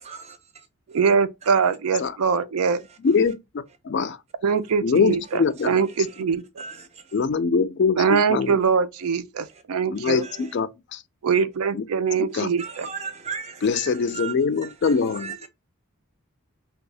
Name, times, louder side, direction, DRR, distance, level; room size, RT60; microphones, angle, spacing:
voice 1, 0.0-0.7 5.2-6.2 6.6-7.2 9.5-9.6 10.0-10.6 12.6-14.3 14.6-15.5, right 6 dB, 30° right, 0.5 m, -38 dB
voice 2, 0.9-2.8 4.4-6.6 8.0-10.2 11.2-12.9, right 6 dB, 85° right, 0.4 m, -23 dB
voice 3, 3.0-3.4 3.8-4.2 4.8-5.8 7.1-8.6 9.9-11.0 11.7-11.8 12.2-12.5 13.6-15.3, left 5 dB, 50° left, 0.3 m, -23 dB
2.7 x 2.3 x 3.8 m
head